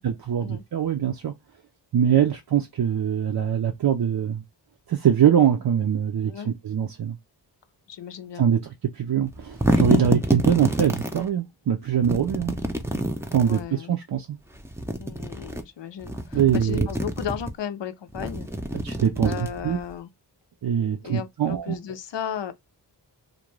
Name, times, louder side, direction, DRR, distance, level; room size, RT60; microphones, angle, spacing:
voice 1, 0.0-1.3 1.9-4.4 4.9-7.2 8.4-12.5 13.3-14.4 16.3-16.9 18.8-19.8 20.6-21.7, right 9 dB, 60° right, 0.5 m, -23 dB
voice 2, 7.9-8.5 13.4-13.9 15.0-18.5 19.2-20.1 21.0-22.5, left 8 dB, 80° left, 0.5 m, -35 dB
sound 1, 9.3-11.2 12.0-13.7 14.6-15.6 16.0-17.5 18.1-19.9, right 1 dB, 5° right, 0.5 m, -26 dB
2.5 x 2.2 x 3.0 m
wide cardioid pair, 65°, 43 cm